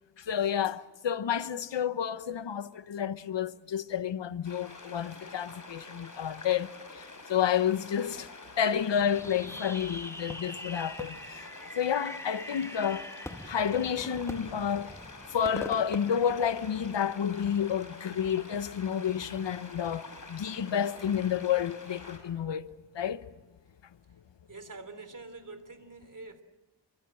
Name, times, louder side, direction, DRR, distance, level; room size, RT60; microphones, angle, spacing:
voice 1, 0.2-8.3 8.6-11.2 11.7-13.1 13.5-14.9 15.3-22.7 22.9-23.2, left 8 dB, 90° left, 1.0 m, -30 dB
sound 1, 4.4-22.2, left 3 dB, 45° left, 6.5 m, -48 dB
Fireworks, 8.9-17.1, left 1 dB, 5° left, 1.6 m, -43 dB
voice 2, 24.5-26.4, right 3 dB, 45° right, 3.5 m, -45 dB
29.0 x 23.5 x 7.7 m
wide cardioid pair, 85°, 42 cm